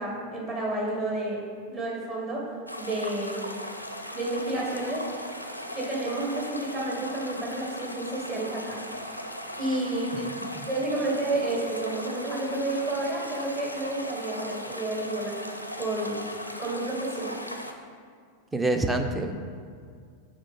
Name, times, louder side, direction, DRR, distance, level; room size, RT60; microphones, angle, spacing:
voice 1, 0.0-1.4 1.7-2.5 2.8-3.4 4.1-5.0 5.7-8.8 9.6-10.2 10.7-15.4 15.8-16.2 16.6-17.3, right 2 dB, 30° right, -3 dB, 1.7 m, -30 dB
sound 1, 2.7-17.7, left 1 dB, 90° left, 0.4 m, -38 dB
voice 2, 18.5-19.3, right 2 dB, 10° right, 6 dB, 0.5 m, -27 dB
6.3 x 3.7 x 5.4 m, 2.1 s
figure-of-eight pair, 90°, 0 cm